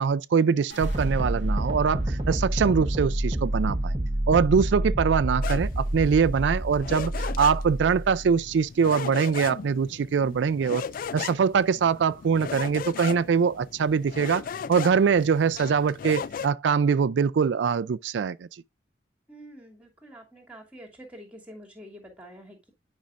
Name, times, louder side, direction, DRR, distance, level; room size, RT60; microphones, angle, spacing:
voice 1, 0.0-3.9 4.3-10.9 11.1-18.6, right 6 dB, 80° right, 0.4 m, -23 dB
sound 1, 0.7-6.9 7.2-7.8, right 1 dB, 80° left, 3.1 m, -39 dB
sound 2, 0.8-8.5, right 1 dB, 30° right, 0.9 m, -28 dB
sound 3, 5.4-16.5, left 6 dB, 50° left, 0.3 m, -37 dB
voice 2, 19.3-22.7, equal, 5° right, 2.6 m, -47 dB
10.5 x 5.3 x 2.5 m
head